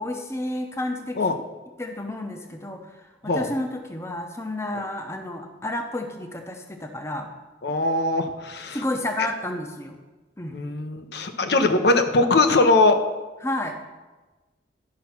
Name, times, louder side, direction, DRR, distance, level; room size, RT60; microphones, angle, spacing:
voice 1, 0.0-1.2 1.8-2.9 3.2-7.3 8.7-10.0 10.4-10.6 11.4-11.8 13.4-13.8, left 1 dB, 15° left, 4 dB, 0.8 m, -31 dB
voice 2, 7.6-8.8 10.5-13.0, left 2 dB, 70° left, 7 dB, 0.8 m, -21 dB
11.5 x 5.7 x 5.9 m, 1.2 s
head